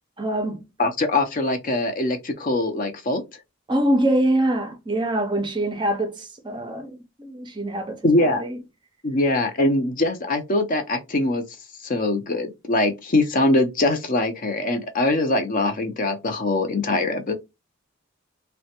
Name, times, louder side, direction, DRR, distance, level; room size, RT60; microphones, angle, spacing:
voice 1, 0.2-0.6 3.7-8.6, right 1 dB, 25° right, 0.5 m, -24 dB
voice 2, 0.8-3.2 8.0-8.4 9.0-11.4 11.8-17.3, left 2 dB, 40° left, 0.5 m, -22 dB
3.2 x 2.1 x 2.8 m
head